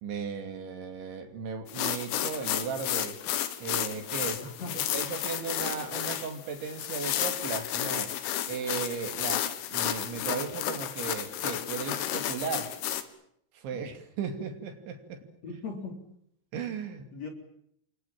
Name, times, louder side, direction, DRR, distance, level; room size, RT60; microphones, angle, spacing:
voice 1, 0.0-3.2 3.6-4.4 4.9-8.1 8.5-12.7 13.5-15.2 16.5-17.1, right 6 dB, 70° right, 7 dB, 4.8 m, -36 dB
sound 1, 1.7-13.0, left 11 dB, 80° left, 4.2 m, -32 dB
voice 2, 4.4-4.9 13.7-13.8 15.4-16.0 17.1-17.3, left 3 dB, 35° left, 4 dB, 4.4 m, -39 dB
29.0 x 22.5 x 7.5 m, 0.71 s
omnidirectional pair, 5.6 m